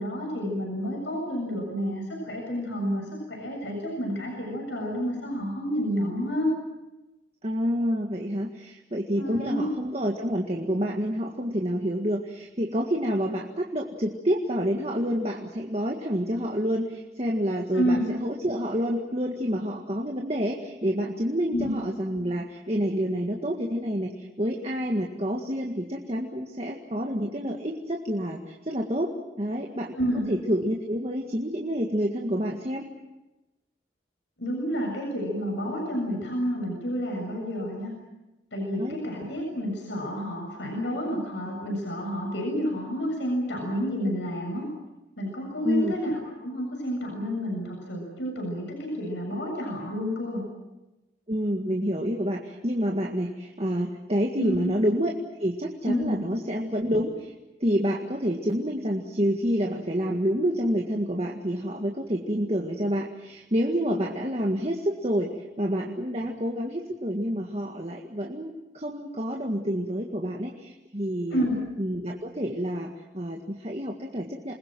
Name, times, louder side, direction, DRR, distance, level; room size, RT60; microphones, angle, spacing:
voice 1, 0.0-6.6 9.2-9.7 17.7-18.1 21.5-21.7 29.9-30.3 34.4-38.0 38.5-44.7 45.2-50.5 54.4-54.7 55.8-56.2 71.3-71.6, equal, 75° left, 0 dB, 7.3 m, -29 dB
voice 2, 7.4-29.1 29.4-30.0 30.3-32.9 38.8-39.0 45.6-45.9 51.3-55.1 55.4-57.3 57.6-71.4 71.8-74.5, equal, 35° right, 1 dB, 1.9 m, -28 dB
28.0 x 21.0 x 7.7 m, 1.0 s
head